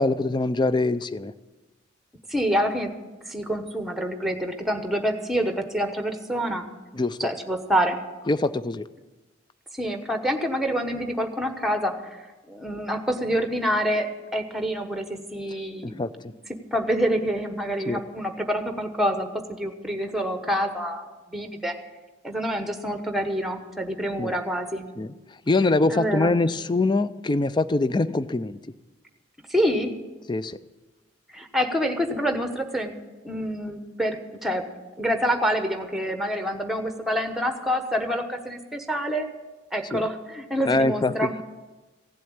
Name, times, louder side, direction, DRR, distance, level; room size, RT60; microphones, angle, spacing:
voice 1, 0.0-1.3 6.9-7.3 8.3-8.8 15.8-16.3 17.9-18.0 24.2-24.3 25.0-25.1 25.5-28.6 30.3-30.6 39.9-40.0 40.6-41.4, left 2 dB, 20° left, 14 dB, 0.4 m, -24 dB
voice 2, 2.3-2.9 3.2-6.7 7.2-8.0 9.7-16.1 16.5-21.8 22.2-24.9 25.9-26.3 29.5-29.9 31.3-32.9 33.2-34.6 35.0-39.3 39.7-41.3, equal, ahead, 6 dB, 1.1 m, -27 dB
16.0 x 7.7 x 8.7 m, 1.2 s
head